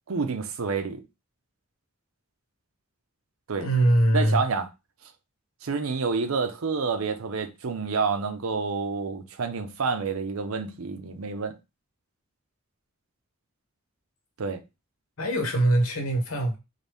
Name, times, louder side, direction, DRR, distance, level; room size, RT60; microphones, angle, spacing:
voice 1, 0.1-1.0 3.5-3.7 4.1-4.7 5.6-11.6 14.4-14.6, right 4 dB, 80° right, 0.6 m, -28 dB
voice 2, 3.6-4.4 15.2-16.6, right 1 dB, 80° left, 1.1 m, -22 dB
4.0 x 2.7 x 3.4 m
head